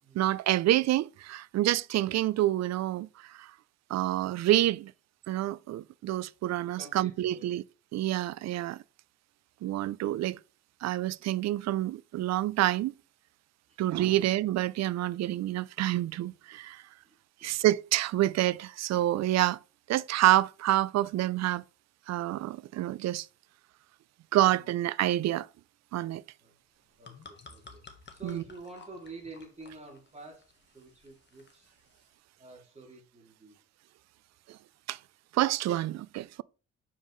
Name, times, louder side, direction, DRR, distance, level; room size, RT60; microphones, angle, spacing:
voice 1, 0.2-3.5 3.9-4.9 5.3-7.6 7.9-8.8 9.6-10.4 10.8-12.9 13.8-16.8 17.4-19.6 19.9-21.6 22.1-23.3 24.3-25.5 25.9-26.2 28.2-28.4 34.5-34.6 34.9-35.0 35.3-36.4, right 14 dB, 60° right, 0.4 m, -28 dB
voice 2, 6.5-7.6 13.7-13.8 17.0-17.6 24.5-24.8 26.4-26.6 27.0-27.8 28.1-31.7 32.4-33.6, right 3 dB, 20° right, 2.9 m, -49 dB
sound 1, 26.7-32.1, left 4 dB, 35° left, 1.5 m, -54 dB
7.1 x 5.5 x 3.2 m
cardioid pair, 90°, 30 cm